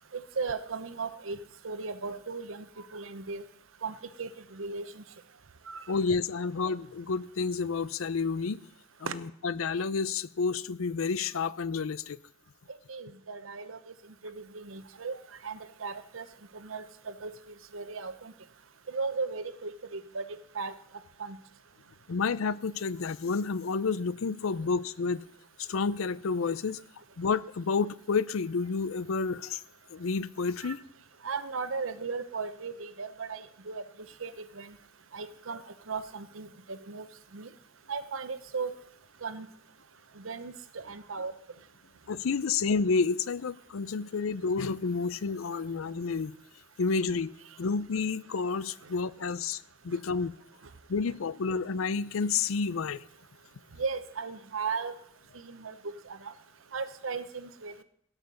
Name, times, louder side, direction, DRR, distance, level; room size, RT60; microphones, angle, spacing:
voice 1, 0.1-1.4 1.6-2.7 2.9-3.4 3.8-5.0 5.7-5.8 9.1-9.2 12.7-13.8 14.2-16.2 16.5-17.3 17.7-18.3 18.9-20.7 21.2-21.4 30.6-30.7 31.2-33.8 34.2-34.7 35.1-35.6 35.9-37.1 37.3-37.5 37.9-38.7 39.2-39.5 40.2-41.3 53.8-55.0 55.3-56.3 56.7-57.8, right 4 dB, 75° right, 12 dB, 0.9 m, -36 dB
voice 2, 5.9-8.6 9.1-12.2 22.1-25.2 25.6-26.8 27.2-29.6 29.9-30.8 42.1-46.3 46.8-50.4 50.9-53.0, left 4 dB, 90° left, 18 dB, 0.5 m, -30 dB
17.0 x 5.8 x 6.8 m, 0.67 s
head